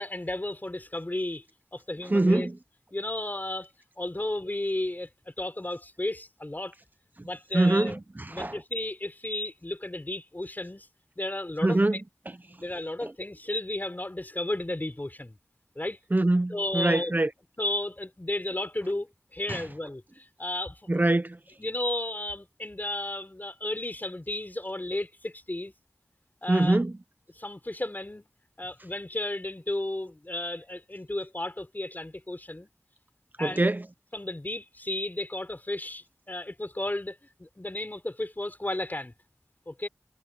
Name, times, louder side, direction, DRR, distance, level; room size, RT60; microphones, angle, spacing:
voice 1, 0.0-1.4 1.7-2.5 2.9-3.7 4.0-6.7 7.2-8.0 8.3-10.9 11.2-11.8 12.6-15.4 15.8-16.0 16.5-17.1 17.6-20.8 21.6-25.7 26.4-26.8 27.4-28.3 28.6-32.7 33.4-33.7 34.1-39.1 39.7-39.9, left 1 dB, 35° left, 5.1 m, -33 dB
voice 2, 2.1-2.6 7.2-7.3 7.5-8.6 11.6-12.0 13.0-13.1 16.1-17.3 19.5-19.7 20.9-21.4 26.5-26.9 33.4-33.9, right 2 dB, 35° right, 0.8 m, -24 dB
wide cardioid pair, 45°, 5 cm